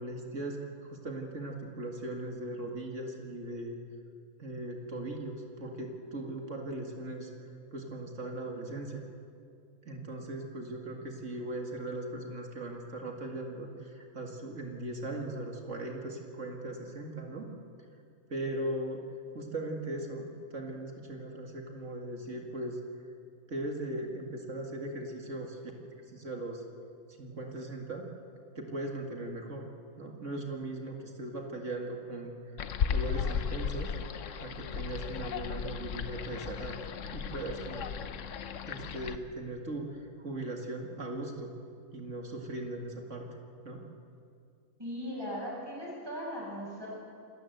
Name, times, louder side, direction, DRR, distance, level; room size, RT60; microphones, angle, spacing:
voice 1, 0.0-3.8 4.4-7.3 7.7-9.0 9.9-17.5 18.3-19.0 19.3-22.8 23.5-26.6 27.1-28.1 28.6-29.7 30.0-32.6 32.9-33.9 34.4-36.8 37.1-37.9 38.7-41.6 41.9-43.3 43.6-43.9, right 1 dB, 55° right, 2 dB, 2.4 m, -39 dB
sound 1, 32.6-39.2, left 7 dB, 65° left, 1.1 m, -35 dB
voice 2, 44.8-46.9, equal, 15° right, -5 dB, 7.2 m, -38 dB
27.0 x 14.0 x 8.0 m, 2.4 s
omnidirectional pair, 1.5 m